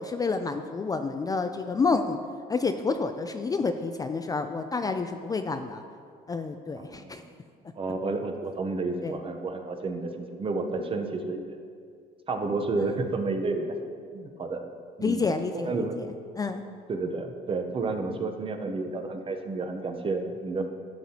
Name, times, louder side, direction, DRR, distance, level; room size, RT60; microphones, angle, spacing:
voice 1, 0.0-2.2 2.5-5.8 6.3-7.2 9.0-9.2 12.8-13.0 15.0-15.9 16.4-16.6, left 4 dB, 20° left, 7 dB, 0.3 m, -29 dB
voice 2, 6.8-7.3 7.7-11.6 12.3-13.8 14.1-14.6 15.0-15.3 15.6-16.0 16.9-20.7, right 3 dB, 30° right, 6 dB, 0.8 m, -31 dB
11.0 x 7.6 x 2.8 m, 2.2 s
cardioid pair, 110°, 17 cm